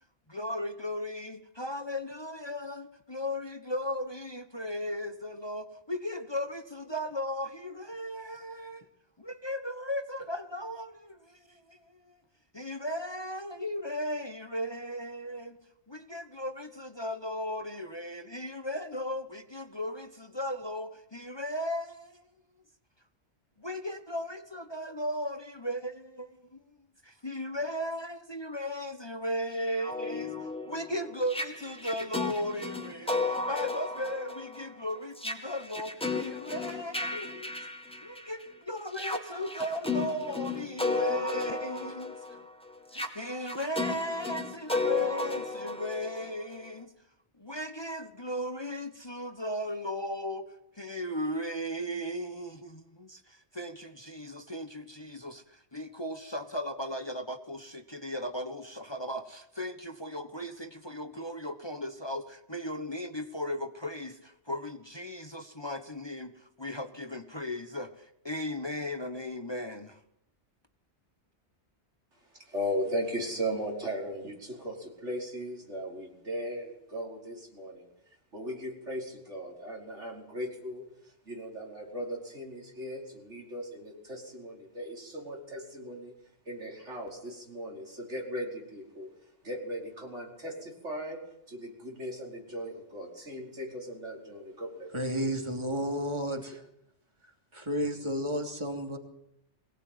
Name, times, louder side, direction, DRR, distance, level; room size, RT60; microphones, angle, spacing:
voice 1, 0.3-8.8 9.2-12.2 12.5-15.6 15.9-22.2 23.6-26.6 27.0-30.3 30.7-37.5 38.0-42.2 42.9-46.9 47.4-50.5 50.7-70.0, left 1 dB, 25° left, 1.3 m, -36 dB
sound 1, 29.6-38.4 38.9-46.7, left 3 dB, 5° left, 2.2 m, -34 dB
voice 2, 72.1-86.1 86.5-89.1 89.4-95.2, equal, 80° right, 5.5 m, -38 dB
voice 3, 94.9-96.7 97.5-99.0, equal, 25° right, 3.1 m, -32 dB
23.0 x 18.5 x 9.4 m
omnidirectional pair, 1.2 m